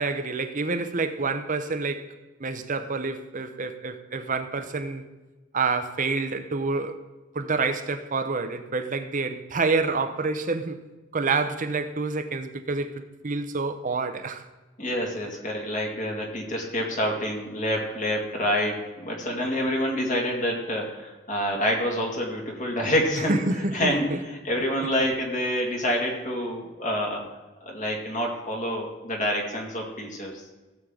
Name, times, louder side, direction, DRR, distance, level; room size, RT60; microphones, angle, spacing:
voice 1, 0.0-2.1 2.4-5.0 5.5-7.0 7.3-10.8 11.1-14.4 23.3-24.2, right 3 dB, 40° right, 9 dB, 0.8 m, -28 dB
voice 2, 14.8-23.4 23.7-27.2 27.6-30.4, equal, 40° left, 0 dB, 2.1 m, -27 dB
16.0 x 7.5 x 3.8 m, 1.2 s
head